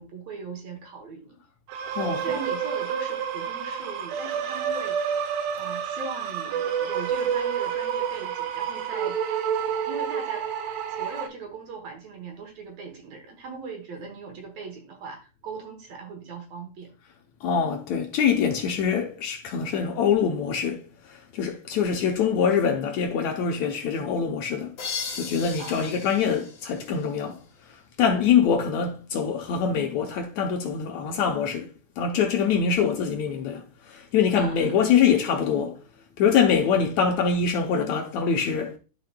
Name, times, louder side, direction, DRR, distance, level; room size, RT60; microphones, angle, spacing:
voice 1, 0.0-1.4 2.0-5.0 5.6-9.2 9.9-10.5 10.9-16.9 25.6-26.0 34.4-34.8, right 4 dB, 65° right, 1.9 m, -39 dB
sound 1, 1.7-11.3, right 8 dB, 80° right, 2.4 m, -29 dB
voice 2, 17.4-24.7 25.1-27.4 28.0-31.7 32.0-35.8 36.2-38.8, left 7 dB, 75° left, 1.7 m, -24 dB
sound 2, 24.8-27.5, left 5 dB, 50° left, 2.6 m, -37 dB
12.0 x 4.7 x 2.2 m
omnidirectional pair, 3.9 m